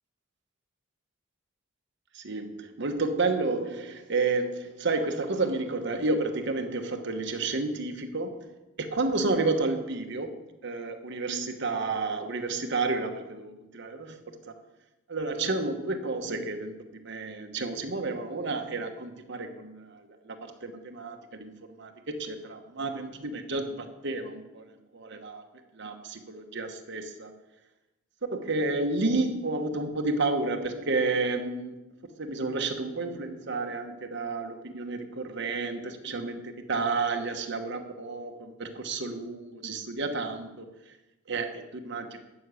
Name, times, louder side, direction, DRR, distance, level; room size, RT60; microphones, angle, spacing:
voice 1, 2.1-8.5 8.8-14.2 14.4-14.5 15.1-16.8 17.0-25.4 25.7-27.3 28.3-31.7 32.1-41.0 41.3-42.2, right 3 dB, 65° right, 5 dB, 1.2 m, -31 dB
13.0 x 6.3 x 8.3 m, 1.0 s
head